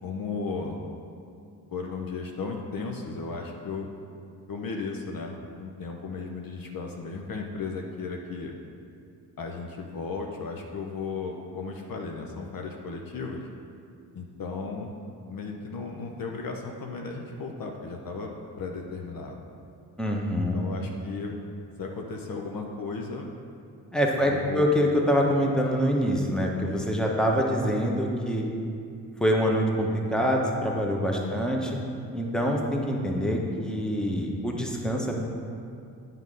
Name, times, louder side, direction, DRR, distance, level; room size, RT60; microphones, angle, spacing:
voice 1, 0.0-0.8 1.7-3.9 4.5-8.5 9.4-13.5 14.1-14.9 15.3-19.4 20.5-21.4 21.8-23.3 24.2-24.7 31.2-31.5, left 4 dB, 45° left, 1 dB, 0.9 m, -35 dB
voice 2, 20.0-20.6 23.9-28.4 29.2-31.8 32.1-35.2, equal, ahead, 0 dB, 1.3 m, -25 dB
9.2 x 3.8 x 5.4 m, 2.4 s
hypercardioid pair, 45°, 48 cm